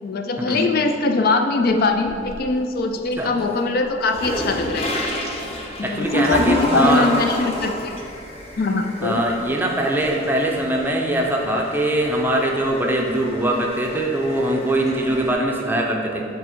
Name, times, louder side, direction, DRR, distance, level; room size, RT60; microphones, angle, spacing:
voice 1, 0.0-4.9 5.8-8.0 8.6-9.2, left 3 dB, 50° left, 5 dB, 0.3 m, -21 dB
sound 1, 1.6-2.6 3.0-15.3, equal, 30° left, 0.8 m, -31 dB
voice 2, 5.8-7.1 9.0-16.2, right 1 dB, 10° right, 0 dB, 0.5 m, -22 dB
7.0 x 3.5 x 4.5 m, 2.5 s
head